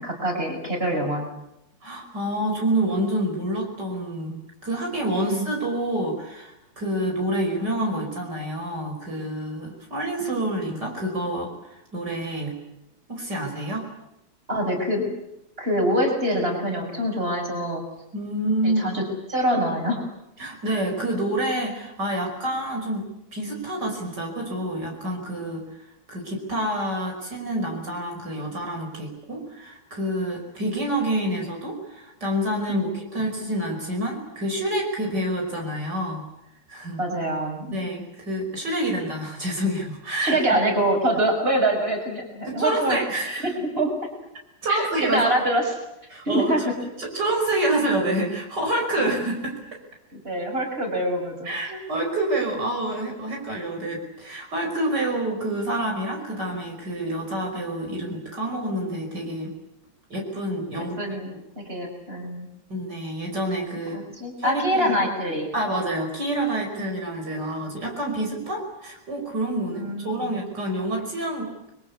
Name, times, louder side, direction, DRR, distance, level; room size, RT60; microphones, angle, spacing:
voice 1, 0.0-1.4 5.2-5.4 14.5-15.1 15.6-17.8 18.6-20.0 32.7-32.9 37.0-37.8 40.2-43.0 43.2-43.9 44.7-45.7 46.2-46.7 49.0-49.1 50.1-51.7 60.8-62.5 63.9-65.5 69.7-70.4, right 1 dB, 30° right, 3 dB, 6.7 m, -25 dB
voice 2, 1.8-4.4 4.6-12.5 13.1-13.9 18.1-18.9 20.4-23.0 23.3-25.6 26.1-36.2 36.7-37.0 37.7-40.4 42.4-43.5 44.6-45.3 46.1-46.5 47.0-49.6 51.4-59.5 60.1-60.9 62.7-64.0 64.4-65.0 65.5-71.5, right 1 dB, 65° right, 1 dB, 6.3 m, -27 dB
29.5 x 23.0 x 8.5 m, 0.85 s
omnidirectional pair, 2.0 m